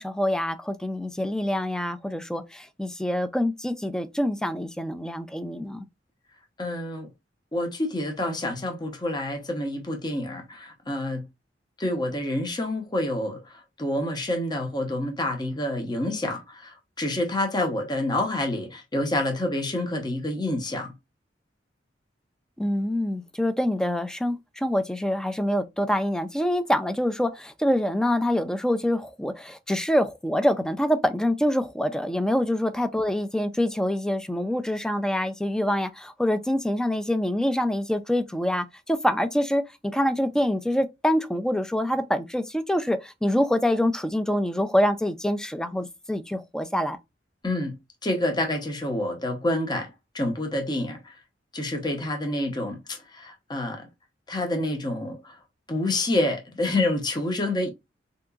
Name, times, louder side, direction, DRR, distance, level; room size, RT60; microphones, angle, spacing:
voice 1, 0.0-5.9 22.6-47.0, left 1 dB, 5° left, 0.3 m, -25 dB
voice 2, 6.6-7.1 7.5-11.3 11.8-13.4 13.8-20.9 47.4-47.7 48.0-51.1 51.5-53.9 54.3-55.3 55.7-57.7, left 1 dB, 25° left, 0.7 m, -28 dB
3.5 x 2.9 x 2.3 m
head